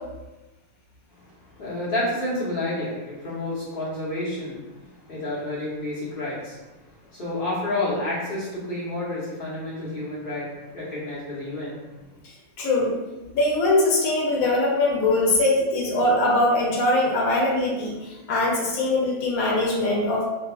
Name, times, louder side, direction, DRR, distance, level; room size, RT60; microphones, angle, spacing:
voice 1, 1.3-6.6 6.9-11.8, left 1 dB, 45° left, -8 dB, 1.0 m, -30 dB
voice 2, 12.6-12.9 13.3-20.2, left 2 dB, 80° left, -3 dB, 1.1 m, -22 dB
2.8 x 2.3 x 2.2 m, 1.1 s
omnidirectional pair, 1.5 m